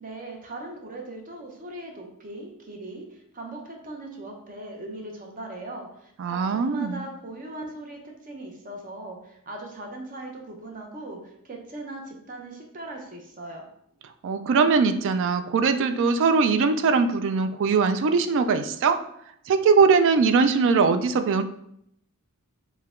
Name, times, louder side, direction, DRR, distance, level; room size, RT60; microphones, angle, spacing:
voice 1, 0.0-13.6, right 2 dB, 40° right, 2 dB, 0.7 m, -39 dB
voice 2, 6.2-7.0 14.2-19.0 19.5-21.4, right 5 dB, 55° right, 9 dB, 0.3 m, -21 dB
4.6 x 2.2 x 3.6 m, 0.73 s
head